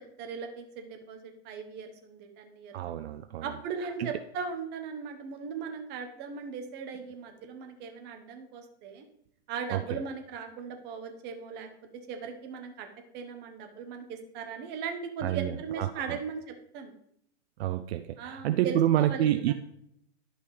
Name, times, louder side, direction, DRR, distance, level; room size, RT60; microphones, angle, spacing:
voice 1, 0.0-3.0 3.4-9.0 9.5-11.7 12.1-12.9 13.1-16.9 18.2-19.5, right 5 dB, 30° right, 5 dB, 1.1 m, -38 dB
voice 2, 2.7-3.5 3.8-4.1 9.7-10.0 15.2-16.2 17.6-19.5, right 12 dB, 65° right, 10 dB, 0.5 m, -28 dB
11.0 x 5.4 x 3.2 m, 0.73 s
hypercardioid pair, 135°, 34 cm